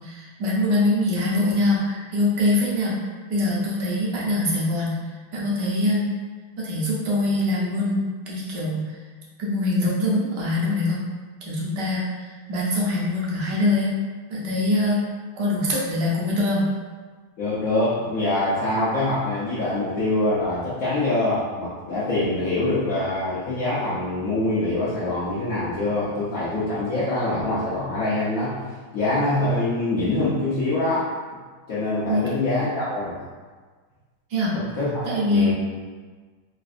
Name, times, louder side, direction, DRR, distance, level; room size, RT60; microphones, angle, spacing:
voice 1, 0.0-5.0 5.3-6.2 6.6-8.8 9.4-11.0 11.4-13.9 14.3-15.1 15.4-16.6 32.1-32.3 34.3-34.6 35.0-35.5, left 1 dB, 65° right, -5 dB, 1.2 m, -23 dB
voice 2, 17.4-28.5 28.9-31.1 31.7-33.2 34.8-35.5, left 2 dB, 65° left, -10 dB, 0.9 m, -24 dB
3.7 x 2.5 x 2.4 m, 1.4 s
omnidirectional pair, 2.3 m